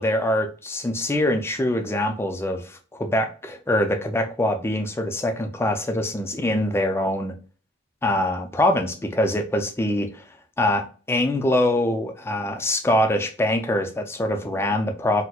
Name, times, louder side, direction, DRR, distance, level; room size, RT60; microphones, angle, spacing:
voice 1, 0.0-7.3 8.0-10.2 10.6-15.2, left 1 dB, 10° left, 6 dB, 0.4 m, -24 dB
4.2 x 2.1 x 2.3 m, 0.38 s
head